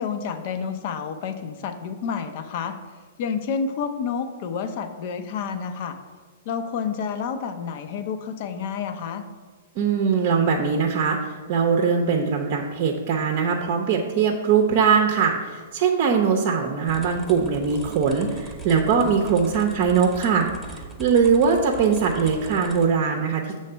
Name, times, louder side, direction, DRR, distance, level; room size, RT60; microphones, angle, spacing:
voice 1, 0.0-2.8 3.2-6.0 6.5-9.2, left 6 dB, 50° left, 8 dB, 0.6 m, -29 dB
voice 2, 9.8-23.6, right 6 dB, 50° right, 3 dB, 0.6 m, -21 dB
sound 1, 16.8-22.9, right 3 dB, ahead, 0.9 m, -40 dB
6.6 x 3.2 x 5.5 m, 1.4 s
hypercardioid pair, 120°, 0 cm